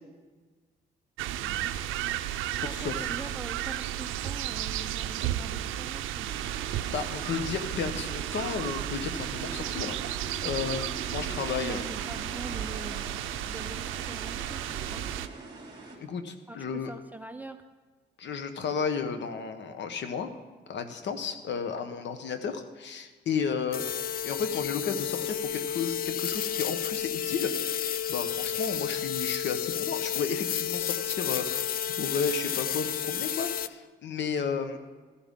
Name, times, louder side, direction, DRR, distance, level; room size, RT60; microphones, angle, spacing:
sound 1, 1.2-15.3, right 12 dB, 90° right, 0.5 m, -33 dB
voice 1, 1.4-1.8 2.5-6.3 11.5-15.4 16.5-17.6, right 2 dB, 10° right, 7 dB, 0.7 m, -43 dB
voice 2, 2.6-2.9 6.9-11.9 16.0-16.9 18.2-20.3 20.7-23.8 24.2-27.5 28.1-31.7 32.0-34.8, left 6 dB, 65° left, 8 dB, 1.1 m, -33 dB
sound 2, 6.3-16.0, right 3 dB, 25° right, 3.4 m, -43 dB
sound 3, 23.7-33.7, left 9 dB, 50° left, 0.4 m, -31 dB
14.0 x 11.5 x 3.7 m, 1.4 s
cardioid pair, 90°, 20 cm